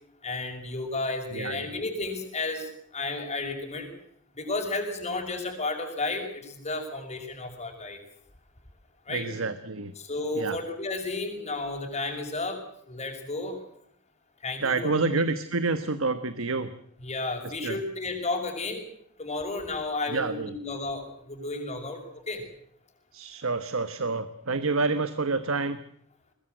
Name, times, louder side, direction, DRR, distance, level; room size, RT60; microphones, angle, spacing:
voice 1, 0.2-3.9 4.3-8.0 9.1-9.3 10.0-12.6 12.9-13.6 14.4-15.2 17.0-18.8 19.2-22.4, left 2 dB, 35° left, 4 dB, 6.0 m, -32 dB
voice 2, 1.3-1.6 9.1-9.9 10.4-10.6 14.6-16.7 17.4-17.8 20.1-20.5 23.1-25.8, right 3 dB, 75° right, 11 dB, 1.2 m, -28 dB
22.5 x 20.5 x 7.9 m, 0.68 s
head